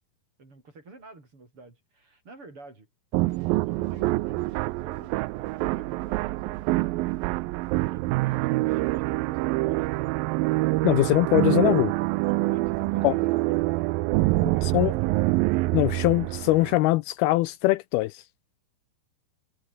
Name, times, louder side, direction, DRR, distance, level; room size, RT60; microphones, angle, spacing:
voice 1, 0.4-2.9 3.7-7.0 7.9-10.2 12.2-13.8 14.5-15.4, right 3 dB, 30° right, 6.8 m, -49 dB
sound 1, 3.1-16.8, right 20 dB, 80° right, 2.1 m, -26 dB
voice 2, 10.8-11.9 13.0-13.1 14.4-14.9 15.7-18.2, left 19 dB, 80° left, 2.5 m, -22 dB
omnidirectional pair, 4.6 m